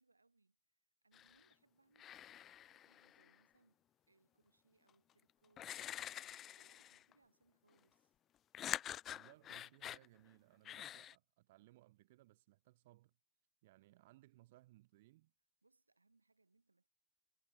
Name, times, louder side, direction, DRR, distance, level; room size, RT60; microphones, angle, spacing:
voice 1, 0.0-8.1 15.6-16.9, right 3 dB, 80° right, 5.1 m, -76 dB
sound 1, 1.1-1.5 2.0-3.4 4.9-5.0 5.6-7.1 8.5-10.1 10.7-11.1, left 11 dB, 30° left, 0.5 m, -47 dB
voice 2, 9.1-13.1 13.6-15.3, right 17 dB, 55° right, 2.9 m, -65 dB
figure-of-eight pair, 90°, 0 cm